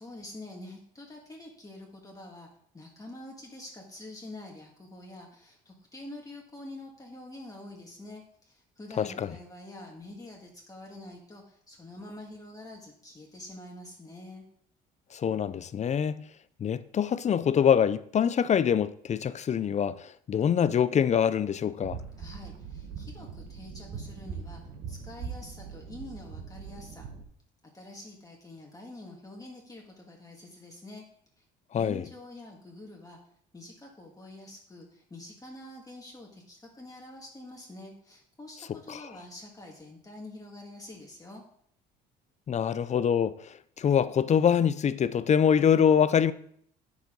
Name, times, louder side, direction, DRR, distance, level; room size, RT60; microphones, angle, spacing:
voice 1, 0.0-14.4 22.2-24.6 24.9-27.1 27.7-31.0 31.4-31.5 31.7-33.2 33.5-41.4, left 1 dB, 20° left, 2.0 m, -46 dB
voice 2, 9.0-9.3 15.1-16.2 16.6-22.0 31.7-32.0 38.9-39.0 42.5-46.3, left 8 dB, 35° left, 0.5 m, -25 dB
sound 1, 21.8-27.2, right 6 dB, 65° right, 1.6 m, -41 dB
8.0 x 6.7 x 3.9 m
supercardioid pair, 75°, 20 cm